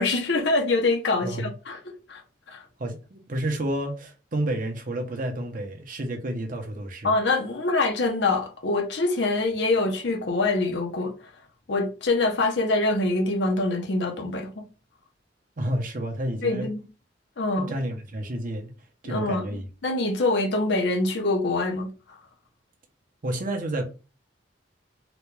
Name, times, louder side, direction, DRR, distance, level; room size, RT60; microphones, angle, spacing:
voice 1, 0.0-1.8 2.1-2.2 2.5-2.6 7.0-11.1 11.7-14.6 16.4-16.8 17.4-17.7 19.0-21.9, left 2 dB, 65° left, 0.8 m, -25 dB
voice 2, 1.2-1.5 2.8-7.1 15.6-16.7 17.5-18.7 19.0-19.7 23.2-23.8, right 1 dB, 50° right, 0.8 m, -30 dB
3.9 x 2.3 x 3.2 m
head